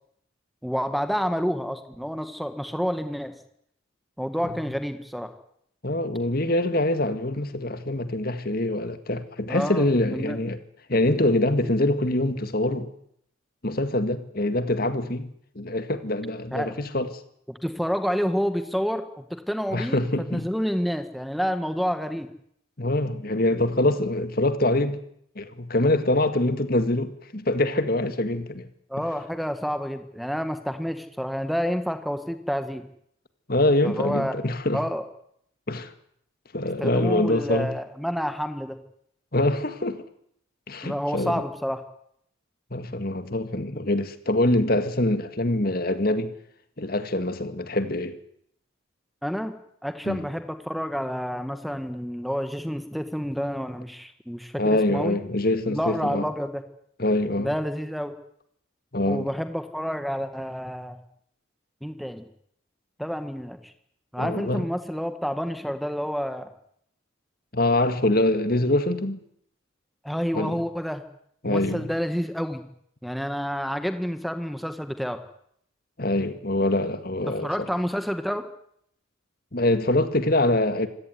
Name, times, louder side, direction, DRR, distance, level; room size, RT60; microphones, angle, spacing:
voice 1, 0.6-3.3 4.2-5.3 9.5-10.4 16.5-16.8 17.5-20.0 20.3-22.3 28.9-32.9 33.8-34.3 34.7-35.0 36.8-38.8 40.8-41.8 49.2-49.5 49.8-55.2 55.7-56.6 57.4-58.1 59.1-61.0 61.8-62.3 63.0-63.7 64.1-66.5 70.0-71.0 71.4-72.6 73.0-75.2 77.3-78.4, equal, ahead, 1.7 m, -29 dB
voice 2, 5.8-10.6 10.9-12.9 13.6-17.1 19.7-20.5 22.8-25.0 25.4-28.7 33.5-34.8 35.7-35.9 36.5-37.7 39.3-40.0 40.7-41.4 42.7-46.3 46.8-48.2 50.1-50.2 54.6-56.3 57.0-57.5 58.9-59.3 64.2-64.7 67.5-69.2 70.3-70.6 71.4-71.9 76.0-77.7 79.5-80.9, left 1 dB, 50° left, 2.0 m, -24 dB
26.5 x 17.0 x 9.6 m
head